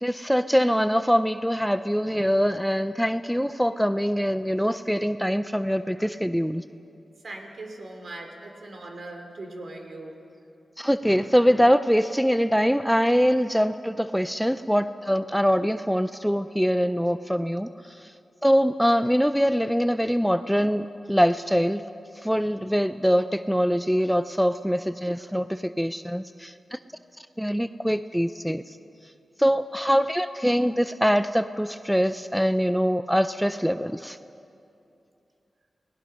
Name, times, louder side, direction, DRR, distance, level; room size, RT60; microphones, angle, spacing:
voice 1, 0.0-6.6 10.8-18.0 18.4-21.8 22.2-26.8 27.4-28.8 29.4-34.2, equal, ahead, 11 dB, 0.4 m, -23 dB
voice 2, 7.2-10.2, right 2 dB, 55° right, 3 dB, 2.9 m, -40 dB
29.0 x 19.0 x 5.7 m, 2.7 s
wide cardioid pair, 115°, 0 cm